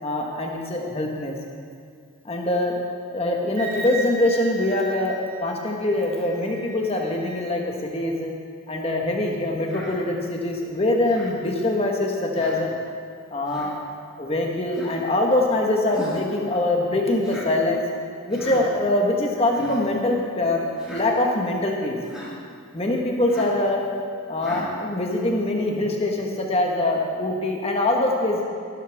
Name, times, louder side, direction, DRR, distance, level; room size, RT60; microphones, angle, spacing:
voice 1, 0.0-1.3 2.2-2.8 3.1-8.3 8.7-12.7 13.3-13.8 14.2-17.8 18.3-22.0 22.7-23.9 24.3-28.4, left 1 dB, 25° left, 0 dB, 1.4 m, -23 dB
Wind instrument woodwind instrument, 3.6-7.4, right 3 dB, 35° right, 2.3 m, -37 dB
Human voice, 9.7-10.0 11.1-11.3 12.3-12.6 13.5-13.7 14.7-15.0 15.9-16.3 17.2-17.5 18.3-18.6 19.4-19.8 20.8-21.0 22.0-22.3 23.3-23.6 24.4-24.7, equal, 5° right, 2.7 m, -38 dB
15.0 x 12.0 x 3.6 m, 2.2 s
head